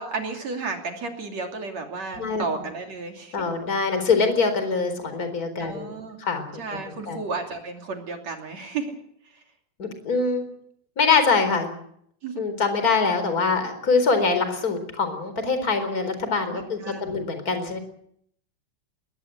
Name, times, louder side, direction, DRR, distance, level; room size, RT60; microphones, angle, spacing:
voice 1, 0.0-3.4 5.6-6.2 6.6-9.0 9.3-9.4 12.2-12.4 16.5-17.2, right 4 dB, 40° right, 3 dB, 3.2 m, -33 dB
voice 2, 3.3-5.9 6.2-6.6 7.1-7.2 9.8-10.4 11.0-11.7 12.4-17.8, left 4 dB, 20° left, 9 dB, 3.8 m, -24 dB
21.5 x 20.5 x 7.9 m, 0.68 s
omnidirectional pair, 6.0 m